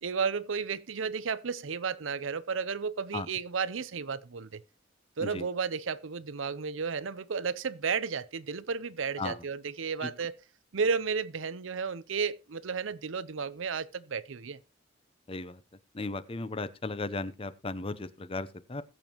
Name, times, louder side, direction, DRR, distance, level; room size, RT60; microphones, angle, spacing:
voice 1, 0.0-4.6 5.2-10.4 10.7-14.6, right 5 dB, 80° right, 0.6 m, -33 dB
voice 2, 15.3-15.6 15.9-18.8, left 3 dB, 30° left, 0.7 m, -36 dB
20.5 x 7.3 x 2.9 m
head